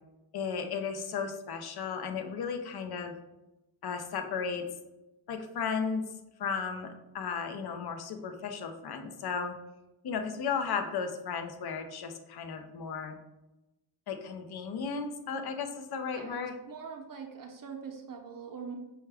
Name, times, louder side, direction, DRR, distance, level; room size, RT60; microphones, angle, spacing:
voice 1, 0.3-3.1 3.8-4.6 5.3-6.0 6.4-9.5 10.0-13.1 14.1-16.5, left 6 dB, 55° left, 6 dB, 0.6 m, -35 dB
voice 2, 16.7-18.8, right 6 dB, 45° right, 3 dB, 0.6 m, -42 dB
5.6 x 2.3 x 3.3 m, 0.97 s
cardioid pair, 85°, 45 cm